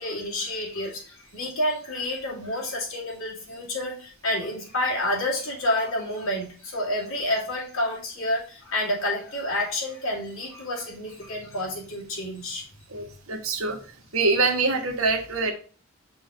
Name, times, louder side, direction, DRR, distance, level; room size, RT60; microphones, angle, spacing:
voice 1, 0.0-12.7, left 1 dB, 75° left, -3 dB, 2.5 m, -29 dB
voice 2, 12.9-13.8 14.1-15.5, right 3 dB, 85° right, 3 dB, 1.3 m, -24 dB
6.1 x 3.2 x 4.9 m, 0.39 s
head